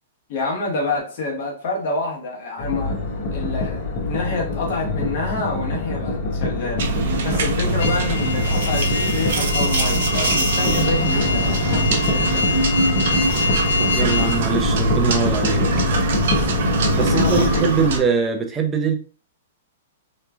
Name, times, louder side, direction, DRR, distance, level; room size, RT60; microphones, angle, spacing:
voice 1, 0.3-3.0 3.3-6.9 7.2-12.6 16.9-17.8, left 3 dB, 55° left, -2 dB, 1.1 m, -27 dB
sound 1, 2.6-17.6, left 2 dB, 35° left, 0.8 m, -25 dB
sound 2, 6.8-18.0, right 3 dB, 65° right, 0.6 m, -23 dB
sound 3, 7.8-14.4, left 4 dB, 75° left, 0.3 m, -26 dB
voice 2, 13.9-15.7 16.9-18.9, right 5 dB, 15° right, 2 dB, 0.6 m, -22 dB
3.1 x 2.2 x 2.3 m, 0.38 s
hypercardioid pair, 130°, 0 cm